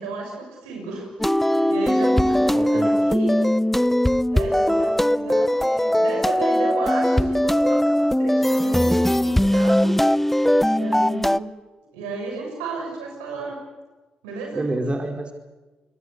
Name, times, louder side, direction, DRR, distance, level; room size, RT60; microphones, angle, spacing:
voice 1, 0.0-3.4 4.3-10.0 10.6-11.5 11.8-13.6 14.2-14.7, right 4 dB, 90° right, 1 dB, 6.7 m, -33 dB
sound 1, 1.2-11.4, left 1 dB, 5° left, 0.8 m, -20 dB
voice 2, 2.5-3.0 14.5-15.3, right 1 dB, 30° right, 4 dB, 4.8 m, -27 dB
28.0 x 22.0 x 8.3 m, 1.2 s
hypercardioid pair, 40°, 4 cm